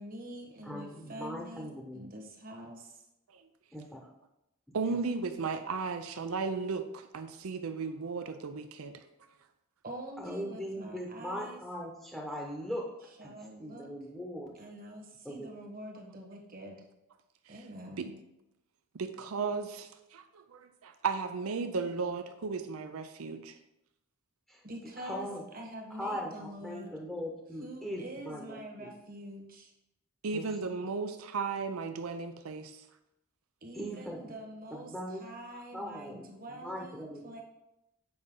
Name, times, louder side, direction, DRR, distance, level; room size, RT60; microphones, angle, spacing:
voice 1, 0.0-3.0 9.8-11.6 13.2-13.9 14.5-16.8 17.5-18.2 24.6-26.9 27.6-29.7 33.6-37.4, right 1 dB, 40° right, 1 dB, 1.3 m, -45 dB
voice 2, 0.6-2.1 3.7-4.1 4.7-5.0 10.2-12.9 13.2-13.3 13.6-14.5 15.2-15.5 24.5-24.6 25.0-25.4 26.0-28.9 30.3-30.5 33.7-34.4 34.7-35.2 35.5-37.4, equal, ahead, -2 dB, 0.9 m, -40 dB
voice 3, 4.7-9.0 17.5-17.6 18.0-18.1 18.9-23.5 30.2-32.8, right 4 dB, 75° right, 8 dB, 0.5 m, -35 dB
7.8 x 5.3 x 3.7 m, 0.87 s
head